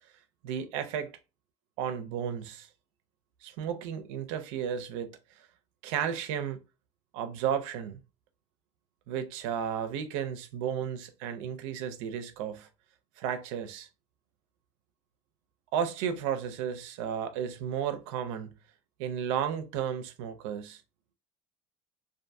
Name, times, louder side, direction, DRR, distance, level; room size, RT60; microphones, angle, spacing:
voice 1, 0.4-1.1 1.8-2.7 3.4-5.2 5.8-6.6 7.1-8.0 9.1-12.7 13.2-13.9 15.7-18.5 19.0-20.8, right 8 dB, 80° right, 0.5 m, -33 dB
2.5 x 2.3 x 2.6 m
supercardioid pair, 120°, 16 cm